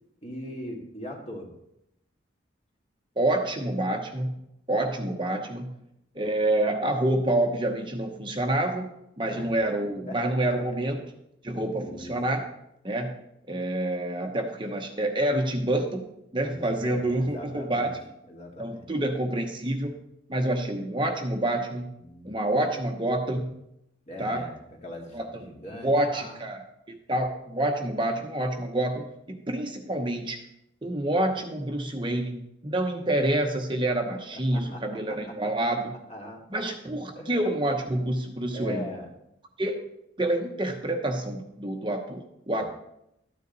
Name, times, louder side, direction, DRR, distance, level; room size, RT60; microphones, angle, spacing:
voice 1, 0.2-1.5 9.3-9.5 10.1-10.3 11.8-12.1 16.4-17.9 18.3-18.9 22.0-22.5 24.1-24.5 24.8-26.4 34.3-35.5 36.1-36.4 37.1-37.3 38.5-39.1 42.5-42.7, left 1 dB, 35° left, 0 dB, 2.1 m, -40 dB
voice 2, 3.2-4.4 4.7-5.8 6.1-8.9 9.2-11.0 11.4-12.4 12.8-13.2 13.5-16.0 16.3-18.1 18.6-19.9 20.3-21.9 22.2-23.5 24.2-24.4 25.1-25.2 25.8-26.6 26.9-30.4 30.8-35.9 36.5-38.9 39.6-39.8 40.2-42.7, right 1 dB, 25° right, 3 dB, 0.9 m, -27 dB
13.5 x 9.9 x 4.0 m, 0.81 s
head